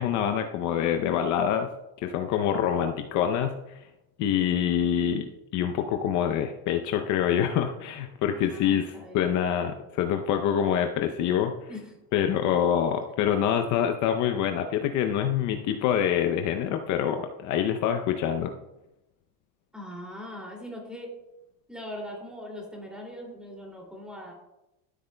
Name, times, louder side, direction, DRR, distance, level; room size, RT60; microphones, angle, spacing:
voice 1, 0.0-1.7 2.0-3.9 4.2-11.7 12.1-18.5, left 9 dB, 50° left, 6 dB, 0.7 m, -26 dB
voice 2, 8.3-9.4 11.7-11.9 19.7-21.1 21.7-24.3, left 1 dB, ahead, -1 dB, 2.5 m, -41 dB
13.5 x 8.4 x 2.2 m, 0.93 s
cardioid pair, 150°, 37 cm